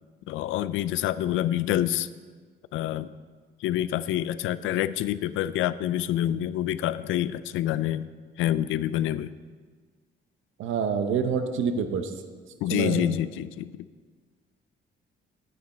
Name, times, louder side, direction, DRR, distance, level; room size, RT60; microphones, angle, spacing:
voice 1, 0.3-2.1 2.7-3.1 3.6-8.1 8.4-9.3 12.6-13.9, left 12 dB, 85° left, 16 dB, 0.4 m, -27 dB
voice 2, 10.6-12.1 12.7-13.1, right 6 dB, 80° right, 8 dB, 0.9 m, -27 dB
9.4 x 8.9 x 4.3 m, 1.5 s
cardioid pair, 90°, 20 cm